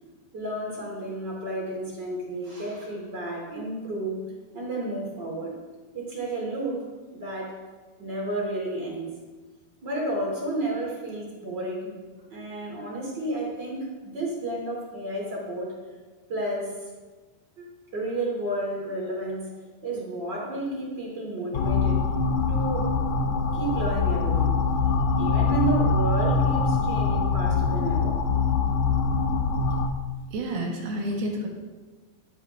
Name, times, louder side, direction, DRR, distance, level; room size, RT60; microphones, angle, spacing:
voice 1, 0.3-4.2 4.5-5.6 5.9-7.6 8.0-9.1 9.8-11.9 12.3-15.8 16.3-16.8 17.6-17.7 17.9-19.5 19.8-22.1 22.5-23.0 23.5-24.6 25.2-28.2, right 2 dB, 30° right, -3 dB, 3.0 m, -31 dB
sound 1, 21.5-29.9, left 4 dB, 80° left, 1.9 m, -23 dB
voice 2, 30.3-31.5, right 1 dB, 70° right, 0 dB, 3.7 m, -29 dB
19.5 x 8.3 x 3.6 m, 1.3 s
omnidirectional pair, 4.7 m